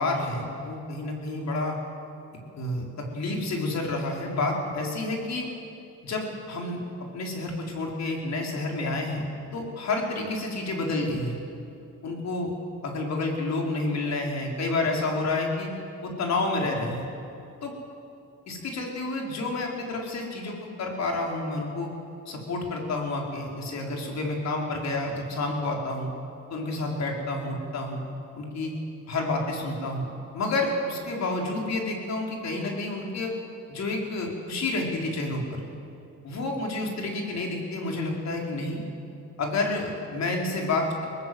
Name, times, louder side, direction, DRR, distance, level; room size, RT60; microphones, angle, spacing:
voice 1, 0.0-1.7 2.6-5.5 6.0-6.8 7.1-9.2 9.5-11.3 12.0-12.5 12.8-15.7 16.0-17.0 17.6-17.7 18.5-21.9 22.3-26.1 26.5-28.0 28.4-28.7 29.1-30.1 30.3-33.4 33.7-35.7 36.2-38.8 39.4-41.1, left 2 dB, 60° left, 0 dB, 4.7 m, -29 dB
22.5 x 18.5 x 8.0 m, 2.7 s
cardioid pair, 90°, 30 cm